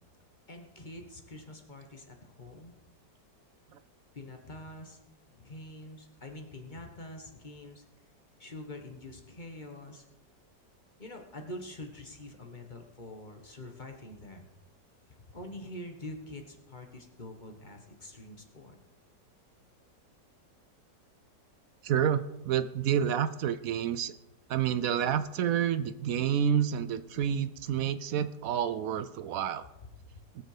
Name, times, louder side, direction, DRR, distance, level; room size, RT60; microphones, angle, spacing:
voice 1, 0.5-2.7 4.1-5.0 5.3-7.8 8.4-10.1 11.0-14.5 15.2-18.8 29.8-30.2, left 1 dB, 30° left, 4 dB, 1.3 m, -45 dB
voice 2, 21.8-24.1 24.5-29.6 30.3-30.4, right 9 dB, 70° right, 13 dB, 0.8 m, -29 dB
20.0 x 6.6 x 4.9 m, 0.94 s
omnidirectional pair, 1.9 m